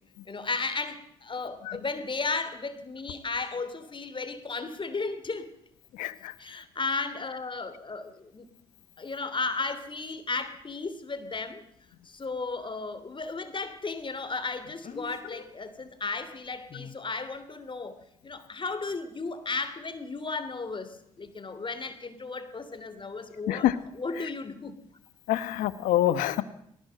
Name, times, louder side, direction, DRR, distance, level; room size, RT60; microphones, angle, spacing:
voice 1, 0.2-5.5 6.4-8.5 9.0-11.6 12.0-18.0 18.2-24.7, left 4 dB, 40° left, 11 dB, 3.2 m, -34 dB
voice 2, 6.0-6.3 23.5-23.7 25.3-26.4, left 13 dB, 80° left, 15 dB, 1.2 m, -25 dB
Speech, 9.5-9.6 14.8-15.5 16.7-17.0, left 4 dB, 60° left, 3.3 m, -43 dB
20.0 x 17.5 x 7.7 m, 0.74 s
supercardioid pair, 50°, 13 cm